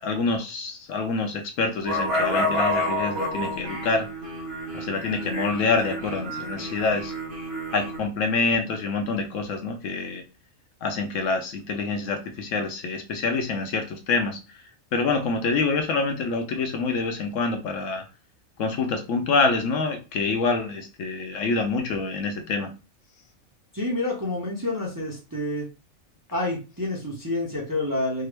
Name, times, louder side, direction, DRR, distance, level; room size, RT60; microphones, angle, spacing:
voice 1, 0.0-4.1 4.7-7.1 7.7-10.2 10.8-14.4 14.9-18.0 18.6-22.7, left 4 dB, 70° left, 5 dB, 0.9 m, -26 dB
sound 1, 1.9-8.0, left 1 dB, 50° right, 1.3 m, -29 dB
voice 2, 23.7-25.7 26.3-28.3, left 2 dB, 20° right, -3 dB, 0.5 m, -28 dB
3.6 x 2.0 x 3.2 m, 0.32 s
omnidirectional pair, 1.4 m